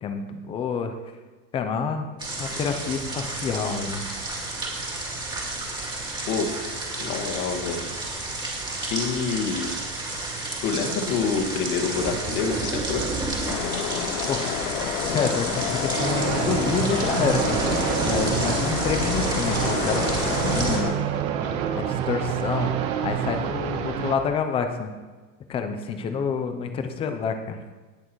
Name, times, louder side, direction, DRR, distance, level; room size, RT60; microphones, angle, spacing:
voice 1, 0.0-0.9 1.5-2.1 2.4-4.0 14.3-14.5 15.1-17.6 18.1-20.0 20.4-21.1 21.8-22.7 23.0-24.9 25.5-27.6, left 6 dB, 10° left, 7 dB, 0.4 m, -28 dB
sound 1, 2.2-20.8, right 2 dB, 10° right, 2.2 m, -30 dB
voice 2, 7.0-7.8 8.9-9.7 10.6-13.0, left 5 dB, 45° left, 1 dB, 2.1 m, -27 dB
sound 2, 13.5-20.9, left 12 dB, 60° left, 0.8 m, -30 dB
sound 3, 16.0-24.2, right 8 dB, 50° right, 1.4 m, -27 dB
18.0 x 6.4 x 4.6 m, 1.3 s
supercardioid pair, 150°, 49 cm